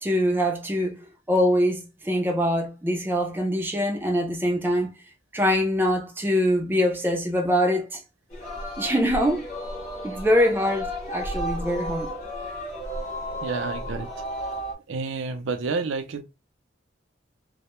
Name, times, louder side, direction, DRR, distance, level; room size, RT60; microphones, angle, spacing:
voice 1, 0.0-4.9 5.3-8.0 8.8-9.5 10.0-12.1, equal, 10° right, 0.3 m, -24 dB
Singing, 8.3-14.7, equal, 40° left, 0.8 m, -33 dB
voice 2, 13.4-14.1 14.9-16.2, right 4 dB, 90° right, 0.4 m, -29 dB
2.1 x 2.0 x 2.9 m
head